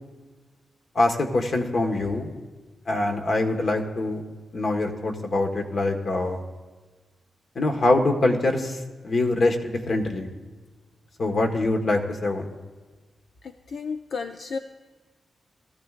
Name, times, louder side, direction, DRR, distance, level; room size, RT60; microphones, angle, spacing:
voice 1, 0.9-2.4 2.9-4.2 4.5-6.4 7.5-8.8 9.0-10.3 11.2-12.5, left 2 dB, 50° left, 3 dB, 1.4 m, -24 dB
voice 2, 13.4-14.6, left 5 dB, 70° left, 7 dB, 0.5 m, -33 dB
21.0 x 14.0 x 2.5 m, 1.3 s
wide cardioid pair, 115°, 0 cm